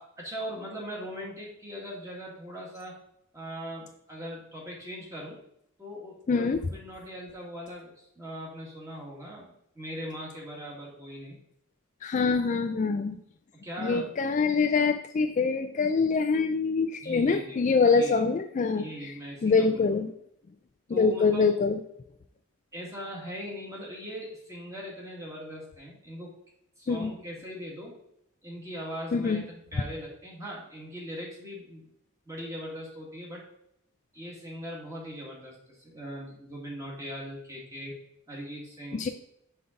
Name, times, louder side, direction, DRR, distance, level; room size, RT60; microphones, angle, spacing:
voice 1, 0.0-3.0 3.3-5.4 5.8-11.4 13.6-14.2 17.0-17.6 17.9-18.2 18.8-19.8 20.9-21.5 22.7-26.4 26.8-27.9 28.4-29.4 29.7-31.9 32.3-33.4 34.1-37.9 38.3-39.1, equal, 15° right, -4 dB, 1.8 m, -40 dB
voice 2, 6.3-6.6 12.0-13.2 13.8-18.9 19.4-20.1 20.9-21.8 26.9-27.1 29.1-29.4 38.9-39.1, left 4 dB, 35° left, 7 dB, 0.3 m, -25 dB
5.7 x 5.5 x 3.7 m, 0.75 s
head